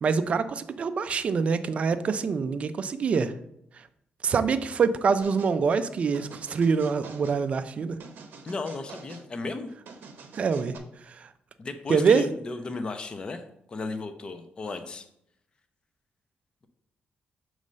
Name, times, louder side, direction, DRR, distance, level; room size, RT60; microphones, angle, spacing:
voice 1, 0.0-3.3 4.2-8.0 10.4-10.7 11.1-11.3 11.9-12.2, right 5 dB, 35° right, 10 dB, 0.4 m, -25 dB
sound 1, 5.2-5.6 6.1-7.4 8.0-9.3 9.9-10.8, right 5 dB, 65° right, 0.7 m, -47 dB
voice 2, 8.4-9.7 11.6-15.1, left 3 dB, 25° left, 8 dB, 0.5 m, -35 dB
6.5 x 3.1 x 5.2 m, 0.75 s
wide cardioid pair, 175°, 4 cm